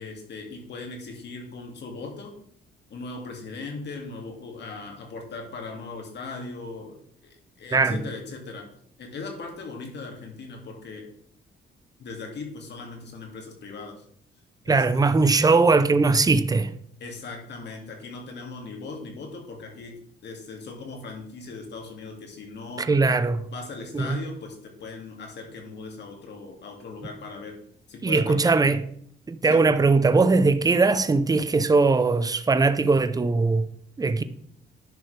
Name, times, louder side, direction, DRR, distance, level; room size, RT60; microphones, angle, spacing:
voice 1, 0.0-2.3 2.9-7.0 7.2-8.7 9.0-11.0 12.0-14.0 14.7-14.8 17.0-19.9 20.2-22.9 23.5-27.6 27.9-28.6 29.4-29.6, left 3 dB, 60° left, 2.2 m, -39 dB
voice 2, 14.7-16.7 22.8-23.5 23.9-24.2 28.0-28.8 29.3-33.7 34.0-34.2, right 3 dB, 20° right, 0.6 m, -20 dB
10.5 x 6.0 x 3.3 m
cardioid pair, 90°, 20 cm